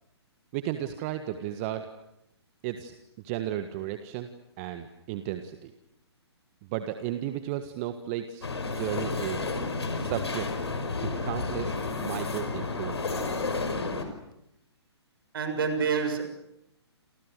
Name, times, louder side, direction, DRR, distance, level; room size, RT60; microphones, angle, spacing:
voice 1, 0.5-1.9 2.6-2.9 3.2-4.3 4.6-5.7 6.7-8.4 8.7-9.5 9.9-10.5 11.0-13.4, right 12 dB, 30° right, 9 dB, 1.6 m, -34 dB
sound 1, 8.4-14.0, left 3 dB, 70° left, 5.5 m, -31 dB
voice 2, 15.3-16.2, right 5 dB, 55° right, 8 dB, 6.9 m, -27 dB
29.0 x 28.0 x 6.7 m, 0.81 s
figure-of-eight pair, 125°, 14 cm